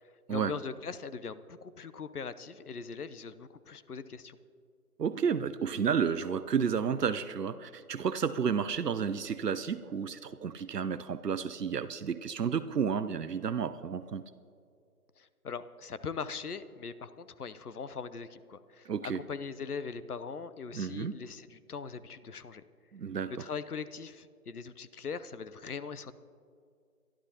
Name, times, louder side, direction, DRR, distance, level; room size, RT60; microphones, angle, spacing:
voice 1, 0.0-4.4 15.2-22.6 23.4-26.1, left 5 dB, 70° left, 14 dB, 0.8 m, -41 dB
voice 2, 5.0-14.2 18.9-19.2 20.7-21.1 22.9-23.3, right 7 dB, 90° right, 13 dB, 0.7 m, -31 dB
23.5 x 11.5 x 2.9 m, 2.3 s
figure-of-eight pair, 160°, 47 cm